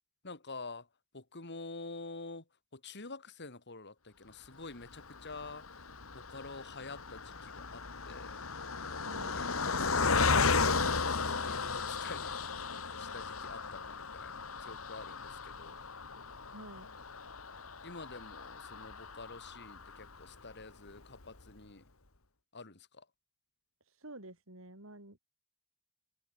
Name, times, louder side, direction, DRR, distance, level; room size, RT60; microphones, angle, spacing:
voice 1, 0.2-0.9 1.1-2.4 2.7-5.7 6.1-8.4 9.2-11.0 11.4-12.5 13.0-15.9 17.8-21.8 22.5-23.0, left 3 dB, 55° left, 3.3 m, -48 dB
Car passing by, 4.9-20.4 20.9-21.0 21.2-21.4, left 4 dB, 90° left, 2.5 m, -35 dB
voice 2, 9.0-9.4 16.5-17.0 24.0-25.2, right 1 dB, 70° right, 5.6 m, -50 dB
open air
head